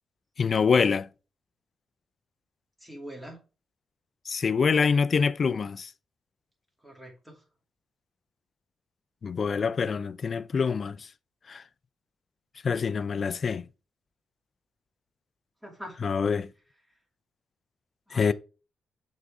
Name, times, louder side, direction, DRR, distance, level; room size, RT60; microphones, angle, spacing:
voice 1, 0.4-1.1 4.3-5.9 9.2-11.1 11.5-11.6 12.6-13.6 16.0-16.5 18.1-18.3, left 5 dB, 45° left, 0.3 m, -25 dB
voice 2, 2.8-3.4 6.8-7.4 15.6-16.1 18.1-18.3, equal, 5° right, 2.5 m, -43 dB
6.4 x 3.7 x 4.8 m
cardioid pair, 100°, 0 cm